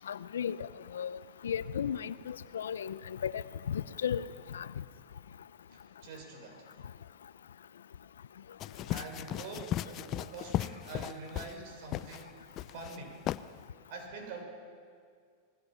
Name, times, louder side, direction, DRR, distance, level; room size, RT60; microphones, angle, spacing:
voice 1, 0.1-4.7, left 8 dB, 85° left, 16 dB, 0.6 m, -35 dB
voice 2, 5.7-6.7 8.9-12.4 12.7-13.2 13.9-14.4, right 3 dB, 60° right, 2 dB, 6.4 m, -45 dB
sound 1, 8.6-11.6 11.9-12.2 12.6-13.0 13.3-13.4, left 13 dB, 40° left, 0.6 m, -36 dB
26.0 x 20.0 x 5.8 m, 2.1 s
hypercardioid pair, 105°, 0 cm